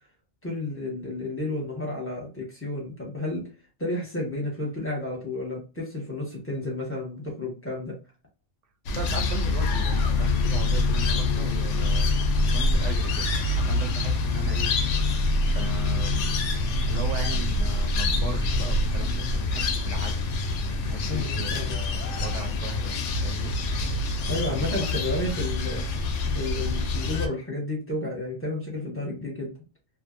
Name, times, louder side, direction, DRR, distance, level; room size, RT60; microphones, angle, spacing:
voice 1, 0.4-3.5 3.8-7.9 21.1-21.8 24.3-25.8 26.3-29.5, left 2 dB, 10° left, -2 dB, 1.0 m, -31 dB
sound 1, 8.9-27.3, left 2 dB, 75° left, 0.9 m, -25 dB
voice 2, 9.0-12.1 12.5-14.7 15.5-16.3 16.9-20.2 20.8-23.6 24.5-24.9, right 4 dB, 75° right, 4 dB, 1.0 m, -37 dB
2.6 x 2.4 x 2.5 m, 0.33 s
omnidirectional pair, 1.3 m